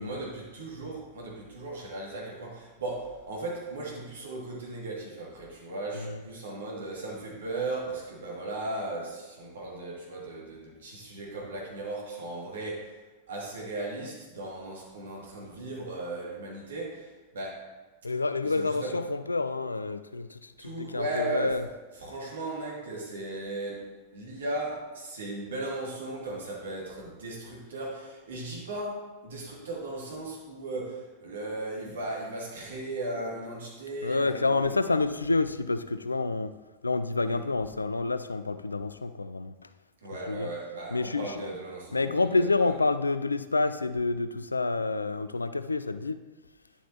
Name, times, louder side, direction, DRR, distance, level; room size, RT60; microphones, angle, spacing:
voice 1, 0.0-13.0 13.3-17.6 18.4-18.9 20.6-21.6 22.0-34.7 37.3-37.4 40.0-42.2, right 2 dB, 65° right, 2.3 m, -37 dB
voice 2, 18.0-21.6 34.0-36.5 36.8-39.7 40.3-40.5 40.9-41.5 41.9-46.2, left 3 dB, 80° left, 0.3 m, -28 dB
10.5 x 7.1 x 2.9 m
figure-of-eight pair, 90°, 0 cm